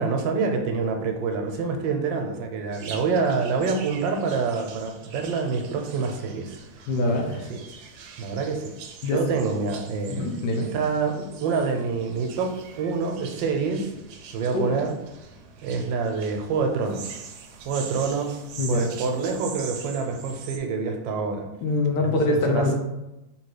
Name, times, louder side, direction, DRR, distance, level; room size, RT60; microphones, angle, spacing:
voice 1, 0.0-6.6 7.1-7.6 8.2-8.7 9.0-10.3 10.7-13.9 14.3-14.9 15.6-17.2 17.6-18.4 18.7-21.5 22.0-22.6, right 5 dB, 85° right, 4 dB, 1.3 m, -27 dB
sound 1, 2.7-20.6, right 6 dB, 70° right, 1.0 m, -43 dB
voice 2, 6.9-7.5 9.0-9.3 10.1-10.7 14.5-14.8 18.6-18.9 21.6-22.7, left 2 dB, 75° left, 1 dB, 1.3 m, -24 dB
3.4 x 2.8 x 4.7 m, 0.96 s
omnidirectional pair, 2.0 m